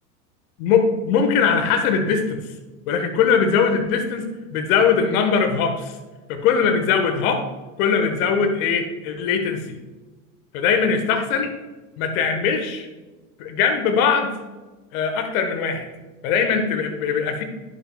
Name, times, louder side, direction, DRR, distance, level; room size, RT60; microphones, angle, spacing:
voice 1, 0.6-2.4 2.9-5.9 6.3-7.5 7.8-9.8 10.5-11.5 12.0-12.9 13.4-14.3 14.9-15.9 16.2-17.4, left 6 dB, 60° left, 6 dB, 1.4 m, -21 dB
10.0 x 7.5 x 2.3 m, 1.2 s
hypercardioid pair, 90°, 47 cm